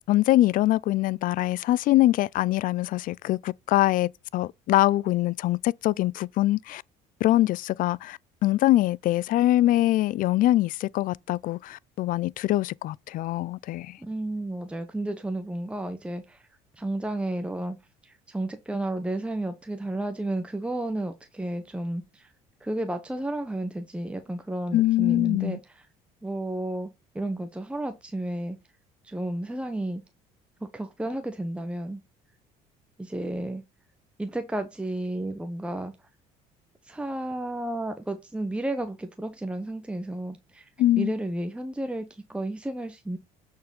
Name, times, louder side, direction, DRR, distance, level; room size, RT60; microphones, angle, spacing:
voice 1, 0.1-6.8 7.2-13.9 24.7-25.6 40.8-41.1, left 15 dB, 60° left, 0.4 m, -23 dB
voice 2, 14.0-16.5 16.7-17.8 18.0-22.3 22.6-25.9 26.2-28.6 29.0-30.0 30.6-32.0 33.0-33.6 34.2-35.9 36.8-40.7 41.0-43.2, right 1 dB, 5° right, 1.0 m, -32 dB
8.5 x 4.7 x 5.2 m
supercardioid pair, 90°, 16 cm